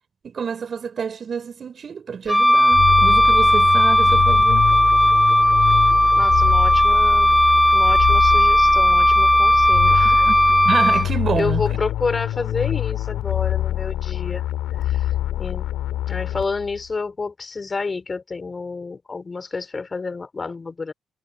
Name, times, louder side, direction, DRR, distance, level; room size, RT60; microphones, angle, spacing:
voice 1, 0.2-4.7 10.2-10.4 10.7-11.6, right 6 dB, 50° right, 3.5 m, -28 dB
Wind instrument woodwind instrument, 2.3-11.1, equal, 5° left, 0.9 m, -16 dB
sound 1, 2.7-16.8, left 13 dB, 75° left, 2.1 m, -25 dB
voice 2, 6.1-7.3 7.7-10.3 11.3-14.4 14.8-15.7 16.1-20.9, left 4 dB, 35° left, 4.5 m, -29 dB
hypercardioid pair, 50°, 0 cm